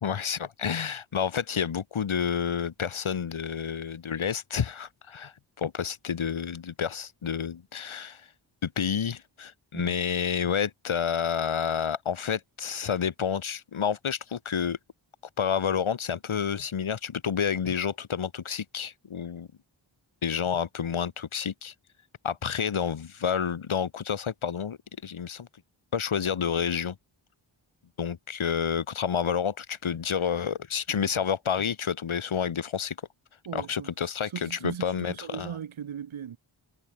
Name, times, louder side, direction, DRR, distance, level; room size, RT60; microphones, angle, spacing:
voice 1, 0.0-8.3 8.6-14.8 15.4-19.5 20.2-21.7 22.2-24.8 25.0-25.5 25.9-27.0 28.0-33.0 33.5-35.5, left 7 dB, 85° left, 2.1 m, -29 dB
voice 2, 33.4-33.9 34.3-36.4, right 8 dB, 80° right, 1.2 m, -38 dB
cardioid pair, 50°, 47 cm